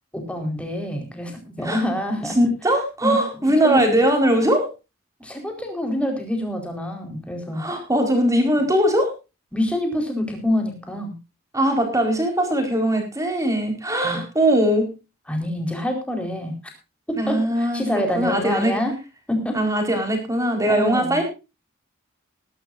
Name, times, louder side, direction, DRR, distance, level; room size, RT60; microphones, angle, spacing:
voice 1, 0.1-2.4 3.0-3.8 5.2-7.6 9.5-11.1 14.0-14.2 15.3-16.5 17.1-18.9 19.3-19.6 20.7-21.2, left 1 dB, 5° left, 3 dB, 4.4 m, -26 dB
voice 2, 2.3-4.7 7.6-9.1 11.5-14.9 17.2-18.7 19.5-21.2, right 1 dB, 15° right, 3 dB, 4.6 m, -20 dB
20.0 x 12.5 x 2.6 m, 0.29 s
head